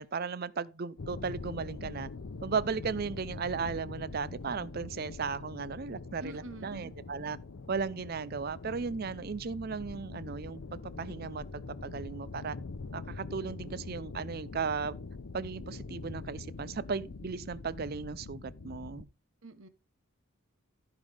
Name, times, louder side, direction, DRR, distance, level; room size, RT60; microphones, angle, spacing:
voice 1, 0.0-2.1 2.4-7.4 7.7-10.6 11.0-12.6 12.9-14.9 15.3-19.1, right 5 dB, 45° right, 0.5 m, -36 dB
sound 1, 1.0-19.0, left 3 dB, 80° left, 0.6 m, -44 dB
voice 2, 6.2-6.9 19.4-19.7, right 1 dB, 65° right, 1.1 m, -45 dB
14.5 x 5.4 x 3.4 m
head